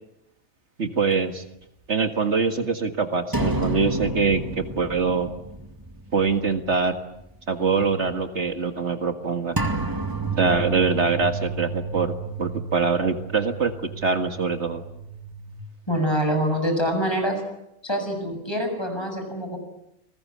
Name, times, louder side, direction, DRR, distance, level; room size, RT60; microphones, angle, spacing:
voice 1, 0.8-1.4 1.9-5.3 6.1-7.0 7.5-9.5 10.4-14.8, right 4 dB, 70° right, 7 dB, 2.2 m, -24 dB
sound 1, 3.3-6.5 6.8-6.9 9.6-15.6, right 2 dB, 15° right, 2.0 m, -31 dB
voice 2, 15.9-17.4 17.8-19.6, equal, 20° left, 4 dB, 7.4 m, -25 dB
29.0 x 21.0 x 9.8 m, 0.84 s
omnidirectional pair, 1.2 m